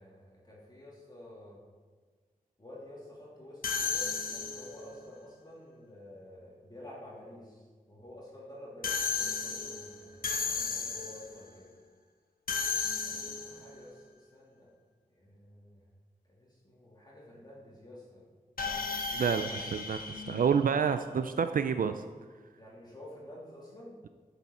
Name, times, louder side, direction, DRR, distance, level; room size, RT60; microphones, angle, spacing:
voice 1, 0.0-1.6 2.6-11.7 13.0-14.7 15.1-15.8 16.3-18.2 22.6-24.0, left 1 dB, 30° left, -6 dB, 2.6 m, -50 dB
sound 1, 3.6-4.9 8.8-11.4 12.5-13.7 18.6-21.1, left 5 dB, 80° left, 1.0 m, -34 dB
voice 2, 19.1-22.0, right 6 dB, 75° right, 9 dB, 0.4 m, -29 dB
13.0 x 7.1 x 4.3 m, 1.5 s
wide cardioid pair, 105°, 15 cm